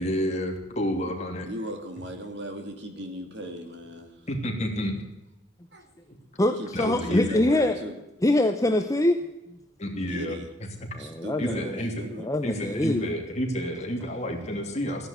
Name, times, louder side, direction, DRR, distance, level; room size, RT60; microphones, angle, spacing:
voice 1, 0.0-1.5 4.3-4.9 6.7-7.6 9.8-10.9 11.4-11.9 12.4-15.1, equal, 35° left, 2 dB, 2.9 m, -30 dB
voice 2, 1.5-4.2 5.7-5.9 6.4-8.0 9.9-10.5 11.0-12.3, equal, 60° right, 5 dB, 2.7 m, -38 dB
voice 3, 6.4-7.8 8.2-9.2 11.0-11.8 12.2-13.1, left 1 dB, 15° left, 6 dB, 0.8 m, -24 dB
14.5 x 10.5 x 8.1 m, 0.95 s
head